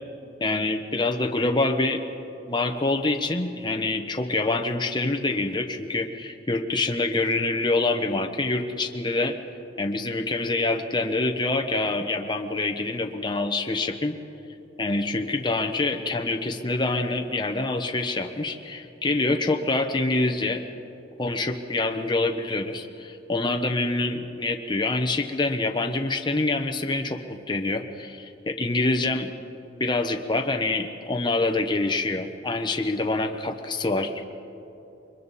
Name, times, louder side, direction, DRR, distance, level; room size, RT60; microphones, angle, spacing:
voice 1, 0.4-2.0 2.5-9.4 9.8-14.2 14.8-20.6 21.2-29.3 29.8-34.2, left 2 dB, 25° left, 4 dB, 1.0 m, -26 dB
29.0 x 23.0 x 4.2 m, 2.9 s
head